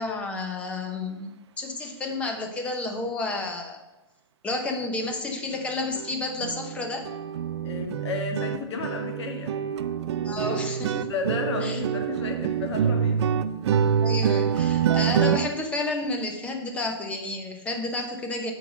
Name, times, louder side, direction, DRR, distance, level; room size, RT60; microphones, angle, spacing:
voice 1, 0.0-3.8 4.4-7.1 10.2-11.1 11.6-11.8 14.0-18.5, left 2 dB, 10° left, 3 dB, 0.8 m, -31 dB
sound 1, 5.5-5.6 5.9-6.1 6.4-15.5, right 8 dB, 85° right, 0.6 m, -26 dB
voice 2, 7.6-9.5 11.0-13.4, left 5 dB, 80° left, 4 dB, 1.7 m, -32 dB
7.8 x 4.8 x 6.1 m, 1.0 s
supercardioid pair, 170°, 14 cm